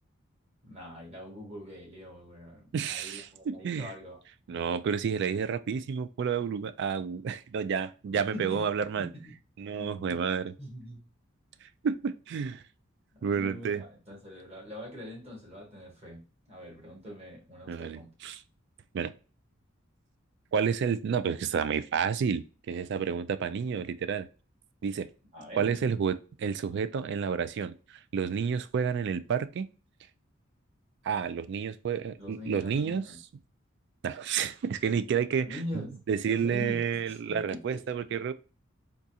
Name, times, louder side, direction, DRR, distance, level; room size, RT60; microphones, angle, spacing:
voice 1, 0.6-4.2 8.1-8.7 9.0-9.3 9.8-10.2 10.6-11.0 13.1-18.1 25.3-25.8 32.2-33.2 35.4-36.0 36.3-37.8, left 1 dB, 30° right, 1.5 m, -43 dB
voice 2, 2.7-3.9 4.5-9.1 9.6-10.5 11.8-12.6 13.2-13.8 17.7-18.4 18.9-19.1 20.5-24.3 24.8-25.1 25.6-29.7 31.0-33.0 34.0-38.3, right 6 dB, 60° right, 0.3 m, -30 dB
3.8 x 2.3 x 2.7 m
head